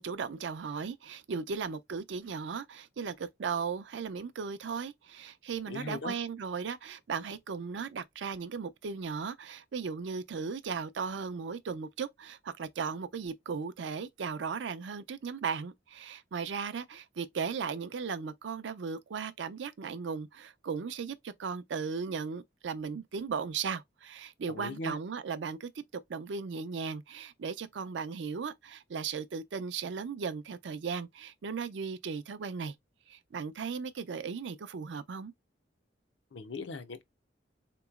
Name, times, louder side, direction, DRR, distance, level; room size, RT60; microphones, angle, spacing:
voice 1, 0.0-25.7 26.1-32.7 33.1-35.3, right 5 dB, 75° right, 0.4 m, -37 dB
voice 2, 5.7-6.2 24.5-25.0 36.3-37.0, left 3 dB, 75° left, 0.6 m, -39 dB
3.7 x 3.0 x 2.3 m
head